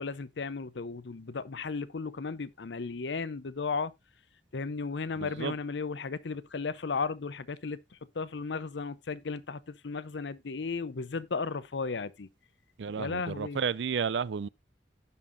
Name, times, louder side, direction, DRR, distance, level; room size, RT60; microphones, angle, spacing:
voice 1, 0.0-3.9 4.5-7.8 8.1-12.3 13.0-13.6, left 4 dB, 85° left, 0.7 m, -35 dB
voice 2, 5.2-5.5 12.8-14.5, right 6 dB, 85° right, 0.4 m, -32 dB
16.0 x 5.5 x 2.5 m
head